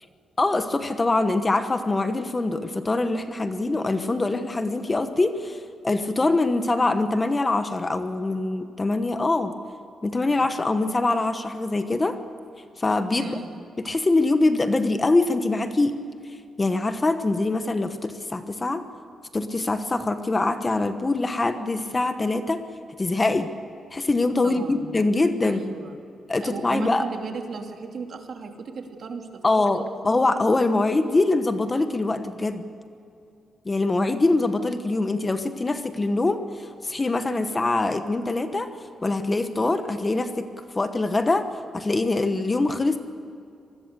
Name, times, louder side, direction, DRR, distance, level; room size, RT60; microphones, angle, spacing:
voice 1, 0.4-9.6 10.0-12.2 12.8-13.4 13.8-15.9 16.6-18.8 19.3-22.6 23.0-23.5 23.9-25.6 26.3-27.0 29.4-32.6 33.6-38.7 39.0-40.5 40.7-41.5 41.7-43.0, left 2 dB, 20° left, 9 dB, 1.1 m, -23 dB
voice 2, 13.1-13.5 24.4-24.9 25.4-26.0 26.4-29.9, right 4 dB, 55° right, 4 dB, 2.5 m, -35 dB
26.0 x 20.5 x 6.8 m, 2.4 s
wide cardioid pair, 140°, 0 cm